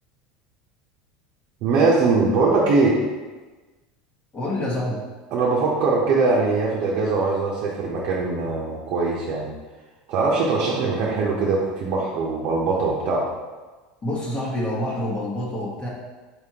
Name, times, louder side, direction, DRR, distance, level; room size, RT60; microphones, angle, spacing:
voice 1, 1.6-3.0 5.3-9.5 10.1-13.2, right 3 dB, 60° right, -4 dB, 0.8 m, -21 dB
voice 2, 4.3-5.0 14.0-15.9, left 1 dB, 30° left, -5 dB, 1.3 m, -27 dB
4.4 x 3.4 x 2.9 m, 1.3 s
supercardioid pair, 100°, 4 cm